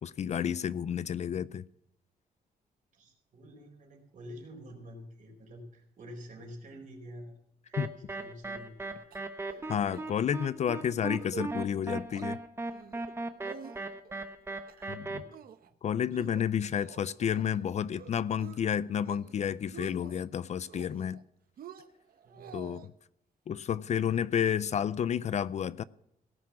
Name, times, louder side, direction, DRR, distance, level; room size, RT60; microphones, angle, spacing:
voice 1, 0.0-1.6 7.8-7.9 9.7-12.4 14.9-15.2 15.8-21.2 22.5-22.9 23.5-25.8, left 8 dB, 45° left, 0.4 m, -31 dB
voice 2, 2.9-7.4 7.7-9.1 9.4-9.7 15.1-15.4 22.2-22.8, equal, 55° right, 4.4 m, -48 dB
sound 1, 7.7-15.2, right 2 dB, 15° right, 0.9 m, -37 dB
sound 2, 9.1-9.7 9.9-10.0 10.4-10.6 11.1-11.5 11.8-12.3 12.7-13.1 13.4-14.1 14.5-15.0 15.3-15.7 16.1-17.6 18.0-18.6 18.9-19.3 19.6-20.2 20.7-21.2 21.6-22.9, right 8 dB, 70° right, 0.8 m, -48 dB
17.5 x 5.9 x 7.3 m
wide cardioid pair, 160°, 16 cm